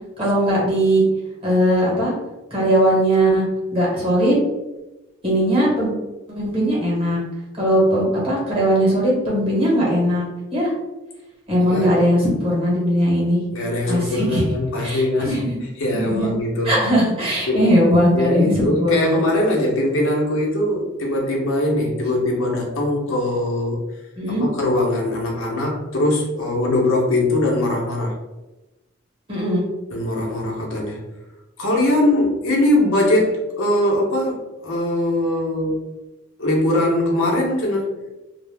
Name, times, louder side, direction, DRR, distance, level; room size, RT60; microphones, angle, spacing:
voice 1, 0.2-1.0 1.4-2.1 2.5-3.4 3.7-4.4 5.2-5.9 6.3-7.2 7.6-10.7 11.5-13.4 13.9-14.4 14.8-15.6 15.9-16.3 16.6-19.2 24.2-24.5 29.3-29.6, equal, 30° right, -5 dB, 1.1 m, -19 dB
voice 2, 11.6-12.0 13.5-15.5 15.8-16.8 17.5-17.6 18.1-23.8 24.3-28.2 29.9-31.0 31.6-35.8 36.4-37.9, left 1 dB, 90° left, -2 dB, 0.8 m, -21 dB
2.4 x 2.0 x 3.3 m, 1.1 s
head